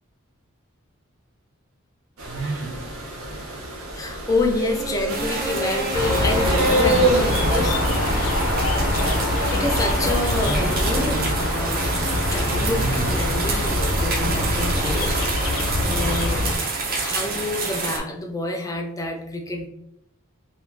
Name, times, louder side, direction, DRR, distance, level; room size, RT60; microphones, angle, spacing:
sound 1, 2.2-15.8, right 1 dB, 85° right, 0.6 m, -28 dB
voice 1, 4.0-7.8 9.1-11.8 12.3-15.1 15.8-16.4 17.0-19.7, left 2 dB, 15° left, 1 dB, 0.4 m, -28 dB
sound 2, 5.1-18.0, right 3 dB, 45° right, 0.5 m, -28 dB
sound 3, 5.9-16.6, left 1 dB, 70° left, 0.6 m, -24 dB
2.5 x 2.3 x 3.2 m, 0.80 s
head